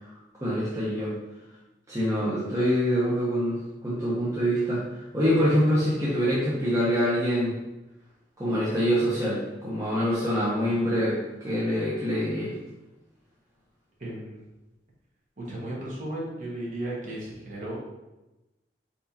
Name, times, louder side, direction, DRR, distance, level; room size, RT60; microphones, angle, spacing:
voice 1, 0.4-1.2 1.9-3.6 3.8-7.5 8.4-12.5, equal, 20° right, -8 dB, 0.8 m, -25 dB
voice 2, 14.0-14.4 15.4-17.8, right 1 dB, 45° right, -5 dB, 1.3 m, -35 dB
4.3 x 4.2 x 2.8 m, 1.0 s
head